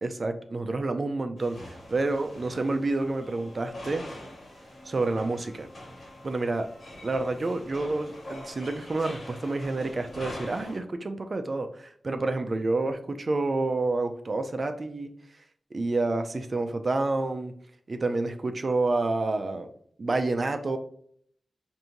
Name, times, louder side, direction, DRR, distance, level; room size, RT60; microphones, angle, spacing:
voice 1, 0.0-4.1 4.8-5.7 6.2-6.7 7.0-15.1 15.7-17.5 17.9-19.7 20.0-20.8, right 2 dB, 45° right, 7 dB, 0.4 m, -29 dB
sound 1, 1.4-10.8, left 1 dB, 55° left, 1.6 m, -44 dB
4.9 x 2.6 x 2.9 m, 0.64 s
wide cardioid pair, 100°, 0 cm